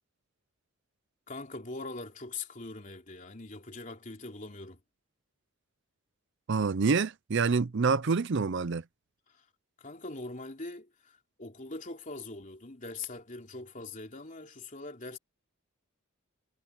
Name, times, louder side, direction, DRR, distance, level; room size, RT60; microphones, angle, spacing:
voice 1, 1.3-4.8 9.3-9.5 9.8-15.2, left 3 dB, 35° left, 3.3 m, -42 dB
voice 2, 6.5-8.8, right 4 dB, 55° right, 0.5 m, -27 dB
head